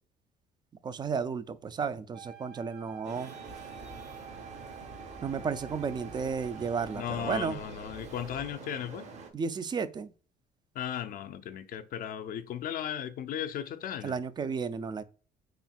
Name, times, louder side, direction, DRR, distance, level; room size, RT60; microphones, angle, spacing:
voice 1, 0.8-3.3 5.2-7.6 9.3-10.1 14.0-15.0, right 5 dB, 25° right, 0.3 m, -33 dB
Wind instrument woodwind instrument, 2.1-7.2, right 9 dB, 75° right, 1.0 m, -49 dB
Traffic noise roadway noise, 3.0-9.3, right 4 dB, 40° right, 0.9 m, -47 dB
sound 1, 3.4-8.6, equal, 55° right, 1.3 m, -52 dB
voice 2, 6.9-9.1 10.7-14.2, left 10 dB, 60° left, 0.5 m, -36 dB
4.3 x 3.3 x 2.3 m
cardioid pair, 110°, 17 cm